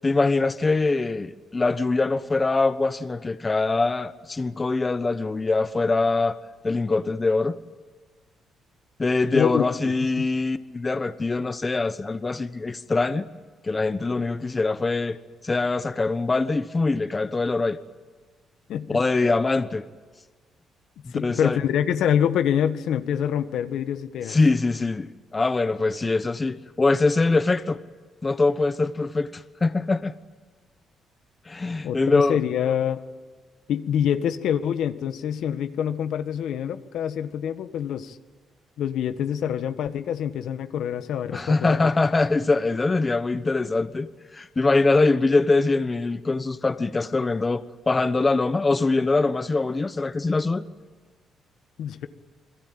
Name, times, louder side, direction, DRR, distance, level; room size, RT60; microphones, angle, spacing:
voice 1, 0.0-6.4 6.6-7.6 9.0-13.3 13.6-15.2 15.4-17.8 18.9-19.8 21.0-21.6 24.3-27.8 28.2-30.1 31.5-32.4 41.3-50.6, left 3 dB, 25° left, 1.1 m, -23 dB
voice 2, 9.3-10.3 18.7-19.0 21.1-24.4 31.8-33.0 33.7-38.2 38.8-41.9 51.8-52.1, left 9 dB, 75° left, 1.5 m, -26 dB
28.5 x 21.5 x 8.9 m
cardioid pair, 90°, 0 cm